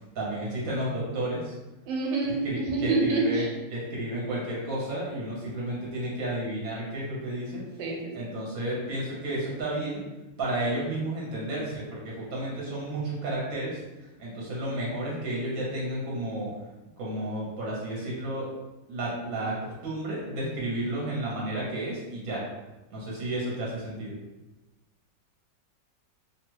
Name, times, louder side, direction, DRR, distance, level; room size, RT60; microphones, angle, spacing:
voice 1, 0.1-1.5 2.4-7.6 8.1-10.0 10.4-13.8 14.2-16.5 17.0-18.5 18.9-22.4 22.9-24.1, right 1 dB, 60° right, -5 dB, 1.1 m, -32 dB
voice 2, 1.9-3.5 7.8-8.3, right 3 dB, 90° right, -1 dB, 1.3 m, -27 dB
2.8 x 2.3 x 3.1 m, 1.0 s
omnidirectional pair, 1.9 m